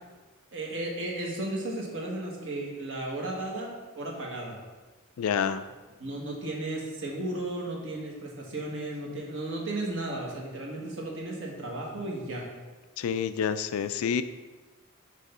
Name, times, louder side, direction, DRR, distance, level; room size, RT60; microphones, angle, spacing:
voice 1, 0.5-4.6 6.0-12.5, right 1 dB, 60° right, -2 dB, 1.4 m, -34 dB
voice 2, 5.2-5.6 13.0-14.2, left 7 dB, 70° left, 12 dB, 0.3 m, -28 dB
6.4 x 3.3 x 5.4 m, 1.3 s
head